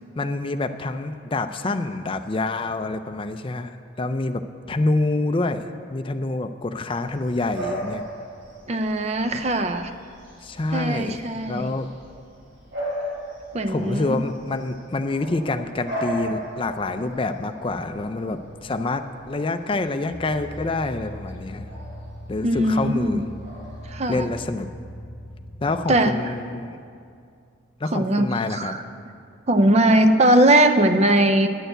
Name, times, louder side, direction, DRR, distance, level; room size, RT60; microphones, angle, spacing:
voice 1, 0.2-5.6 5.9-8.0 10.4-11.9 13.7-21.7 22.3-23.3 24.1-24.7 25.6-26.8 27.8-28.7, left 2 dB, 25° left, 8 dB, 0.4 m, -27 dB
Bark / Bird vocalization bird call bird song, 6.9-24.4, equal, 55° right, 2.9 m, -38 dB
voice 2, 8.7-9.9 10.7-11.7 13.5-14.2 22.4-23.2 23.9-24.3 25.9-26.1 27.9-28.8 29.5-31.5, right 1 dB, 30° right, 9 dB, 0.4 m, -20 dB
sound 1, 20.1-26.1, equal, 5° right, 0.8 m, -40 dB
10.0 x 6.7 x 7.9 m, 2.3 s
head